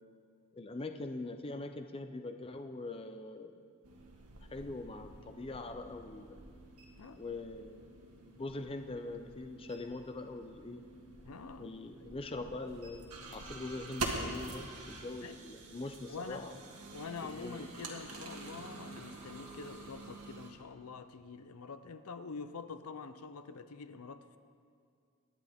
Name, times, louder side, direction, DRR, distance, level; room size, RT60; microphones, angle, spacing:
voice 1, 0.5-3.7 4.5-6.4 7.2-7.9 8.3-10.8 11.6-16.5 17.2-17.7, left 2 dB, 25° left, 7 dB, 0.5 m, -43 dB
sound 1, 3.8-20.5, right 3 dB, 85° right, 1.7 m, -46 dB
voice 2, 11.2-11.7 15.2-15.4 16.1-16.5 16.9-24.4, left 4 dB, 80° left, 11 dB, 0.6 m, -46 dB
23.5 x 10.0 x 3.6 m, 2.2 s
head